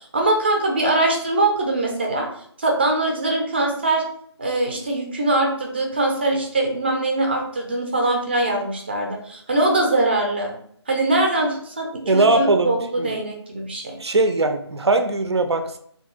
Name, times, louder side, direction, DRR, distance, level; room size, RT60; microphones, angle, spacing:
voice 1, 0.1-2.3 2.6-4.0 4.4-10.5 10.9-14.0, right 2 dB, 20° right, 1 dB, 0.5 m, -22 dB
voice 2, 12.1-13.1 14.0-15.8, right 2 dB, 65° right, 7 dB, 0.5 m, -20 dB
3.6 x 2.9 x 4.3 m, 0.64 s
figure-of-eight pair, 155°, 15 cm